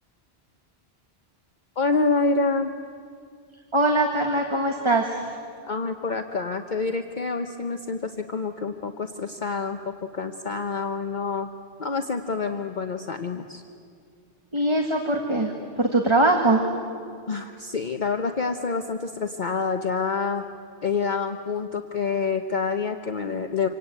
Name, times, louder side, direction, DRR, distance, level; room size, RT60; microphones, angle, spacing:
voice 1, 1.8-2.7 5.6-11.5 11.8-13.6 17.3-20.5 20.8-23.7, left 4 dB, 50° left, 5 dB, 1.0 m, -27 dB
voice 2, 3.7-5.2 14.5-16.6, right 2 dB, 25° right, 2 dB, 1.8 m, -22 dB
27.0 x 24.5 x 9.1 m, 2.3 s
omnidirectional pair, 1.1 m